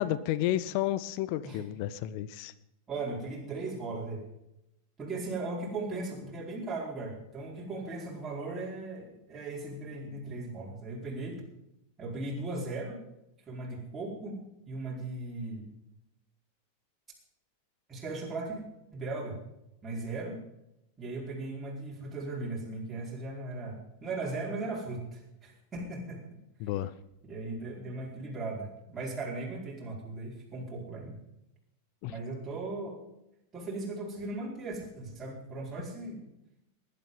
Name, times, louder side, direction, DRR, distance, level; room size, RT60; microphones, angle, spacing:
voice 1, 0.0-2.5 26.6-26.9 32.0-32.1, left 13 dB, 45° left, 16 dB, 0.8 m, -31 dB
voice 2, 2.9-4.3 5.0-11.4 12.0-13.0 13.5-15.7 17.9-18.6 18.9-19.4 19.8-20.4 21.0-26.2 27.2-31.2 32.0-33.0 33.5-36.2, right 2 dB, 15° right, -5 dB, 4.7 m, -38 dB
19.5 x 10.5 x 5.5 m, 0.86 s
figure-of-eight pair, 90°, 0 cm